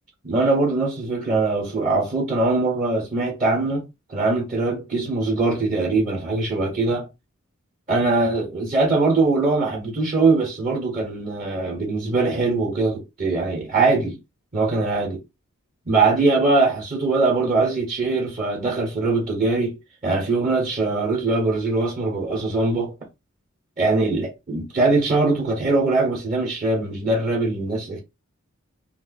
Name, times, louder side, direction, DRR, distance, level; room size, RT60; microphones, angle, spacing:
voice 1, 0.2-7.1 7.9-14.2 14.5-15.2 15.9-19.8 20.0-22.9 23.8-28.0, right 3 dB, 35° right, 1.1 m, -22 dB
2.6 x 2.3 x 3.9 m
head